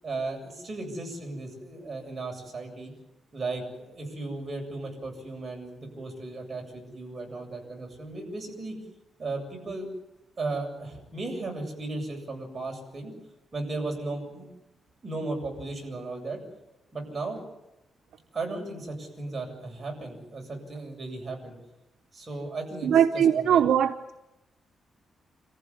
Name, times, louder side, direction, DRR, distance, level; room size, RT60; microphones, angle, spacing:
voice 1, 0.0-2.9 3.3-8.8 9.2-9.9 10.4-13.1 13.5-14.5 15.0-16.4 16.9-17.4 18.3-21.5 22.1-23.6, right 2 dB, 30° right, 7.6 m, -35 dB
voice 2, 22.8-23.9, right 9 dB, 85° right, 1.0 m, -20 dB
28.0 x 15.0 x 9.9 m
wide cardioid pair, 145°, 0 cm